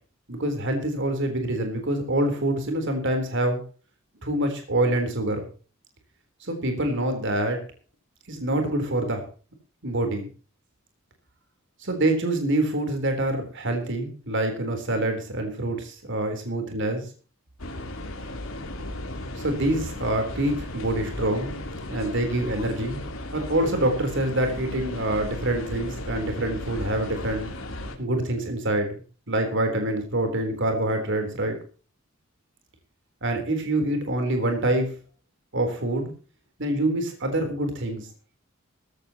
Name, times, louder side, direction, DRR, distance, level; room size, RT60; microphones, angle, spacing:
voice 1, 0.3-3.6 4.2-5.4 6.4-7.6 8.3-9.2 9.8-10.3 11.8-17.1 19.4-21.6 21.9-23.0 23.3-27.5 28.0-29.0 29.3-31.6 33.2-34.9 35.5-36.1 36.6-38.1, right 1 dB, 60° right, 5 dB, 3.9 m, -26 dB
sound 1, 17.6-28.0, left 1 dB, 70° left, 3.3 m, -35 dB
18.5 x 15.5 x 3.0 m, 0.36 s
head